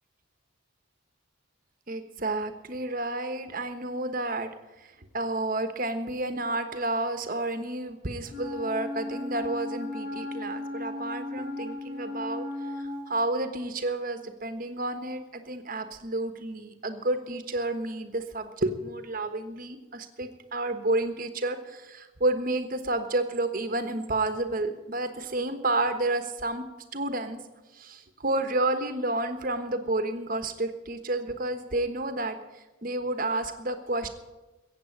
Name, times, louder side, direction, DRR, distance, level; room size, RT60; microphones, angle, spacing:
voice 1, 1.9-4.5 4.8-12.4 13.1-26.6 26.9-27.4 27.7-32.4 32.8-34.1, right 2 dB, 45° right, 9 dB, 1.3 m, -30 dB
Wind instrument woodwind instrument, 8.3-13.1, left 2 dB, 50° left, 5.6 m, -35 dB
15.0 x 8.6 x 8.6 m, 1.1 s
head